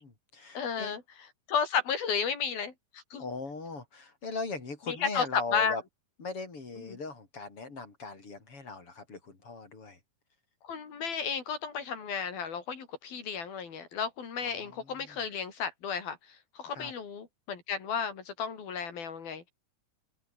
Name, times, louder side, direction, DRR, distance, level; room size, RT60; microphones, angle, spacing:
voice 1, 0.0-0.9 3.2-5.8 6.2-10.0 14.4-15.2 16.7-16.9, left 3 dB, 40° left, 5.8 m, -39 dB
voice 2, 0.5-1.0 1.5-3.2 4.9-5.8 6.8-7.0 10.6-19.5, left 6 dB, 90° left, 6.0 m, -33 dB
omnidirectional pair, 4.1 m